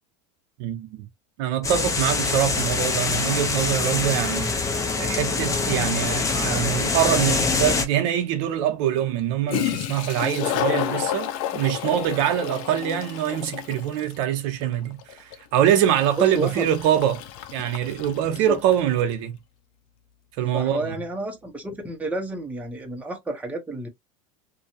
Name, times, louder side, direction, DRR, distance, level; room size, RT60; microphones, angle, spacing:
voice 1, 0.6-1.1 1.4-4.7 5.0-17.2 17.5-19.3 20.4-21.0, right 10 dB, 70° right, 0.7 m, -24 dB
sound 1, 1.6-7.9, left 4 dB, 20° left, 0.7 m, -24 dB
Toilet flush, 9.5-18.9, left 11 dB, 60° left, 0.5 m, -31 dB
voice 2, 16.2-16.7 18.3-18.6 20.5-23.9, right 2 dB, 10° right, 0.8 m, -30 dB
2.6 x 2.3 x 2.7 m
supercardioid pair, 115°, 17 cm